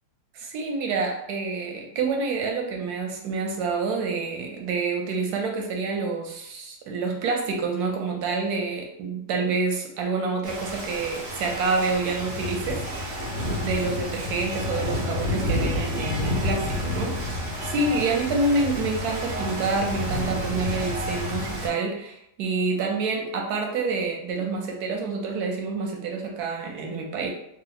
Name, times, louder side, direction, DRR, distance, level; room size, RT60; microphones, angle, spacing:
voice 1, 0.3-27.3, right 4 dB, 70° right, 1 dB, 1.1 m, -28 dB
Rain, 10.4-21.7, left 1 dB, 50° right, 0.7 m, -29 dB
2.9 x 2.0 x 3.9 m, 0.76 s
omnidirectional pair, 1.8 m